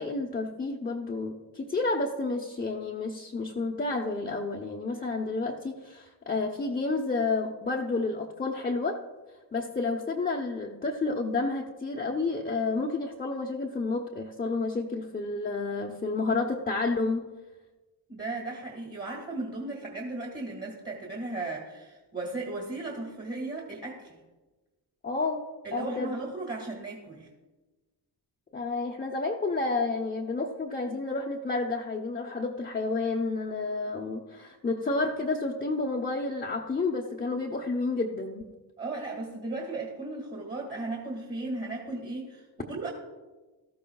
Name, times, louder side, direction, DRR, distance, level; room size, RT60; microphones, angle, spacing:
voice 1, 0.0-9.0 9.5-17.3 25.0-25.4 25.7-26.1 28.5-38.4, left 3 dB, 20° left, -1 dB, 0.9 m, -30 dB
voice 2, 18.1-24.2 25.6-27.3 38.8-42.9, right 2 dB, 25° right, -1 dB, 2.1 m, -36 dB
17.5 x 13.5 x 2.3 m, 1.2 s
cardioid pair, 115°, 41 cm